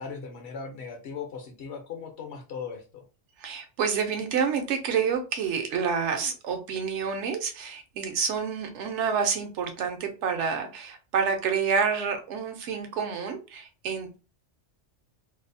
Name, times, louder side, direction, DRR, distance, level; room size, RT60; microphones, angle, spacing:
voice 1, 0.0-3.0, left 5 dB, 70° left, 4 dB, 0.9 m, -38 dB
voice 2, 3.4-14.2, right 6 dB, 80° right, 5 dB, 0.9 m, -28 dB
2.6 x 2.0 x 2.5 m, 0.33 s
omnidirectional pair, 1.2 m